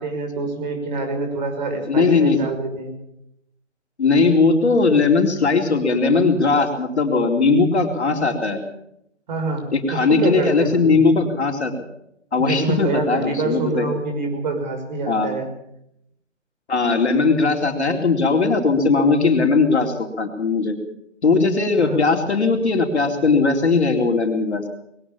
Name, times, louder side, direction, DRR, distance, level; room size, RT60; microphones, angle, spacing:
voice 1, 0.0-3.0 9.3-11.0 12.4-15.5 21.8-22.0, right 3 dB, 35° right, 4 dB, 6.3 m, -26 dB
voice 2, 1.9-2.4 4.0-8.6 9.7-11.7 12.3-13.9 15.1-15.3 16.7-20.7 21.2-24.6, left 4 dB, 60° left, 4 dB, 4.0 m, -18 dB
21.5 x 18.0 x 7.2 m, 0.76 s
figure-of-eight pair, 145°, 37 cm